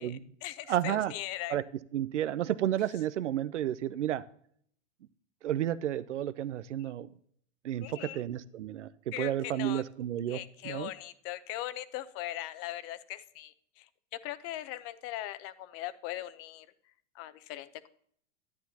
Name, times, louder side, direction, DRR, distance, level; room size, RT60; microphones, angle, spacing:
voice 1, 0.0-1.6 6.8-6.9 7.8-8.2 9.1-9.8 10.3-13.9 14.2-16.7 17.1-17.9, left 14 dB, 40° left, 15 dB, 0.7 m, -40 dB
voice 2, 0.7-1.1 1.5-1.6 1.9-4.2 5.4-7.1 7.6-10.4 10.6-10.9, right 11 dB, 90° right, 17 dB, 0.5 m, -31 dB
11.5 x 9.4 x 2.8 m, 0.63 s
hypercardioid pair, 110°, 35 cm